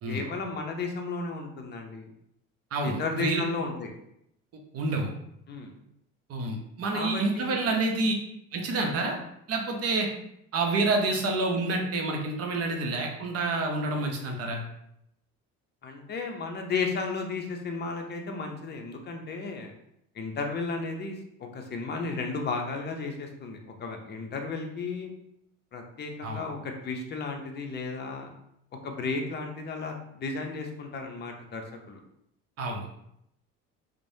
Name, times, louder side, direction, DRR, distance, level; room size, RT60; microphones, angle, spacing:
voice 1, 0.1-2.1 2.8-3.9 5.5-5.7 6.9-7.6 15.8-19.7 20.1-25.1 25.7-28.3 28.8-32.0, left 4 dB, 30° left, 3 dB, 0.6 m, -34 dB
voice 2, 2.7-3.4 4.7-5.1 6.3-8.1 8.5-9.2 9.5-10.1 10.5-14.6 26.2-26.4 32.6-32.9, right 2 dB, 50° right, 2 dB, 0.7 m, -28 dB
3.1 x 2.1 x 2.6 m, 0.76 s
supercardioid pair, 85°, 32 cm